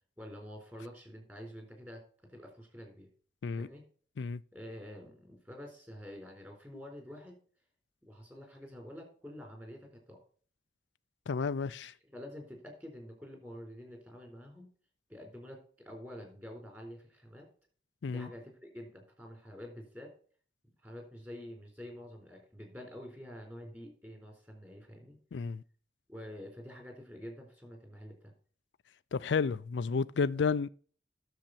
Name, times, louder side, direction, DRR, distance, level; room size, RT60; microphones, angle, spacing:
voice 1, 0.2-3.1 3.6-3.8 4.5-7.4 8.0-10.2 11.8-14.7 15.1-17.5 18.1-20.1 20.8-25.2 26.1-28.3, equal, 10° right, 4.1 m, -48 dB
voice 2, 11.3-11.9 18.0-18.3 25.3-25.6 29.1-30.7, left 5 dB, 85° left, 0.4 m, -31 dB
10.5 x 7.3 x 4.3 m
head